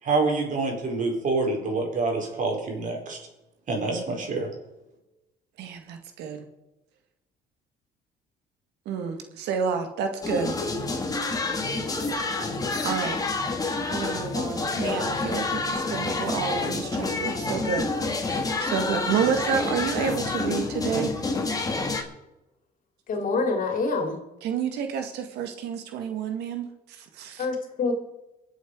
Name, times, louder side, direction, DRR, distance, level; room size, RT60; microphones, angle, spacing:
voice 1, 0.0-3.2 3.7-4.5, right 3 dB, 50° right, 1 dB, 4.8 m, -26 dB
voice 2, 5.6-6.4 8.9-10.6 12.8-13.2 13.9-21.1 24.4-27.5, right 7 dB, 85° right, 6 dB, 2.0 m, -30 dB
sound 1, 10.2-22.0, left 3 dB, 20° left, 2.2 m, -28 dB
voice 3, 23.1-24.2 27.4-27.9, left 4 dB, 55° left, 4 dB, 3.3 m, -26 dB
24.0 x 8.1 x 4.9 m, 0.98 s
cardioid pair, 110°, 17 cm